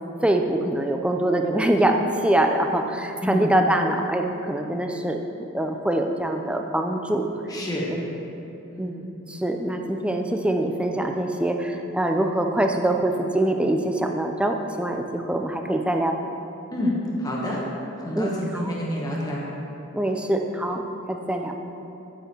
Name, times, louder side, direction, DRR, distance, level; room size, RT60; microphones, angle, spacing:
voice 1, 0.2-5.2 5.5-7.2 7.9-8.1 8.8-16.2 18.1-18.7 19.9-21.6, right 1 dB, 5° right, 3 dB, 0.5 m, -24 dB
voice 2, 7.5-7.9 8.7-9.0 16.7-17.6 18.0-19.5, left 1 dB, 20° left, -4 dB, 1.5 m, -28 dB
9.9 x 9.3 x 4.5 m, 3.0 s
head